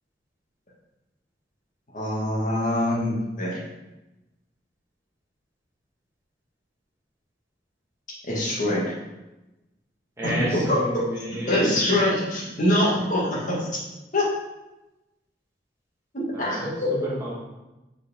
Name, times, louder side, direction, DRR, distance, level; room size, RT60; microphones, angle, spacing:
voice 1, 1.9-3.6 8.2-8.9 10.2-10.8 11.5-13.7 14.1-14.3 16.1-16.9, left 1 dB, 45° left, -5 dB, 1.8 m, -24 dB
voice 2, 10.2-11.8 16.3-16.7 17.0-17.3, equal, 15° right, -6 dB, 1.6 m, -30 dB
4.8 x 4.6 x 4.3 m, 1.0 s
head